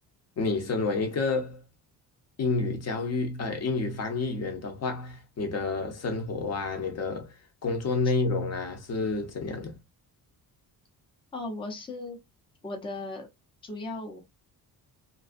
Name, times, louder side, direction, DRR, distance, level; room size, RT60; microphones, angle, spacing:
voice 1, 0.4-1.6 2.4-7.4 7.6-9.8, left 3 dB, 40° left, 0.8 m, -29 dB
voice 2, 11.3-12.2 12.6-13.3 13.6-14.2, left 2 dB, 15° left, 0.6 m, -36 dB
2.5 x 2.3 x 2.3 m
cardioid pair, 140°, 39 cm